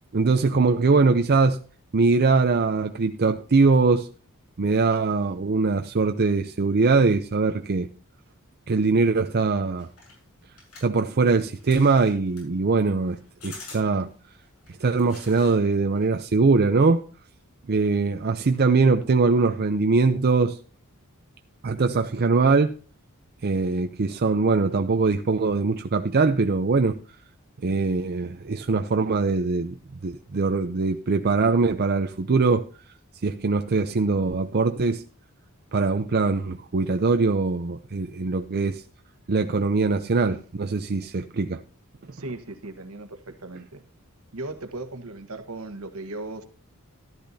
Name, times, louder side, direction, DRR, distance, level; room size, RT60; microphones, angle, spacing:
voice 1, 0.1-1.6 1.9-4.1 4.6-7.9 8.7-9.9 10.8-14.1 14.8-17.0 17.7-20.6 21.6-22.7 23.4-27.0 27.6-32.7 33.2-35.0 35.7-38.8 39.3-41.6, right 4 dB, 45° right, 0.6 m, -22 dB
sound 1, 9.8-15.6 15.9-16.4, left 3 dB, 75° left, 7.1 m, -47 dB
voice 2, 42.1-43.8 44.3-46.4, right 2 dB, 70° right, 1.3 m, -37 dB
13.5 x 12.0 x 2.8 m
head